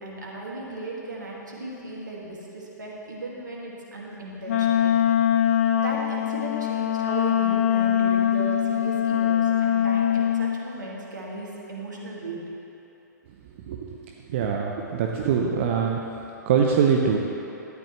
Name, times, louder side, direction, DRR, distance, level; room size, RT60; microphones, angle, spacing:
voice 1, 0.0-4.9 5.7-12.4, right 2 dB, 70° right, -3 dB, 2.0 m, -36 dB
Wind instrument woodwind instrument, 4.5-10.6, left 10 dB, 45° left, 0.5 m, -22 dB
voice 2, 14.3-16.0 16.5-17.2, right 6 dB, 40° right, 0 dB, 0.7 m, -23 dB
12.5 x 9.7 x 3.1 m, 2.9 s
figure-of-eight pair, 115°, 10 cm